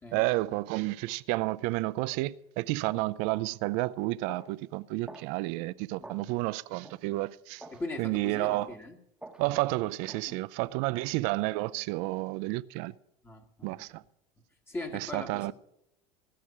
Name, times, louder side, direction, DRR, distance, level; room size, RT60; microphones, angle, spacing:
voice 1, 0.1-7.6 8.0-8.7 9.4-12.9 13.6-14.0 14.9-15.5, right 20 dB, 65° right, 0.5 m, -31 dB
sound 1, 2.1-2.3 2.8-3.1 3.6-3.8 4.3-4.5 5.1-5.3 6.0-6.2 6.8-7.0 7.6-7.8 8.5-8.7 9.2-9.5 10.1-10.3 11.0-11.2, right 2 dB, 5° right, 1.5 m, -47 dB
voice 2, 6.0-6.4 7.7-9.0 10.3-10.4 10.9-11.0 13.2-13.9 14.7-15.5, left 2 dB, 15° left, 1.9 m, -41 dB
16.0 x 6.5 x 8.7 m
supercardioid pair, 115°, 13 cm